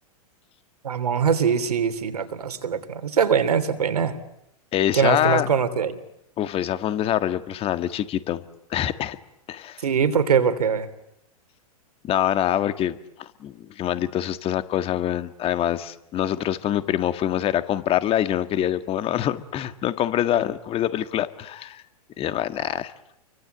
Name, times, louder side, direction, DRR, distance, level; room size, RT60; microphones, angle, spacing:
voice 1, 0.8-4.1 4.9-6.0 9.8-10.9, right 7 dB, 85° right, 9 dB, 3.2 m, -22 dB
voice 2, 4.7-5.5 6.4-8.4 8.7-9.2 9.5-9.8 12.0-21.8 22.2-22.9, left 11 dB, 30° left, 11 dB, 1.7 m, -25 dB
29.5 x 24.0 x 8.1 m, 0.81 s
hypercardioid pair, 115°, 19 cm